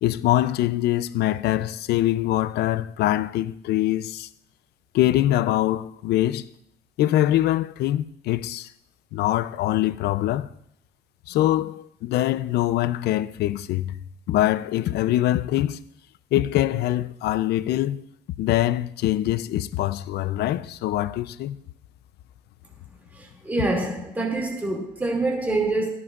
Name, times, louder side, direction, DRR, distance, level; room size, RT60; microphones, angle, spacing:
voice 1, 0.0-4.3 4.9-6.5 7.0-8.7 9.1-10.5 11.3-14.0 14.3-15.8 16.3-18.0 18.4-21.6, left 14 dB, 75° left, 0.6 m, -23 dB
voice 2, 23.1-25.9, right 2 dB, 10° right, 2.5 m, -26 dB
16.5 x 13.5 x 2.5 m
cardioid pair, 110°, 17 cm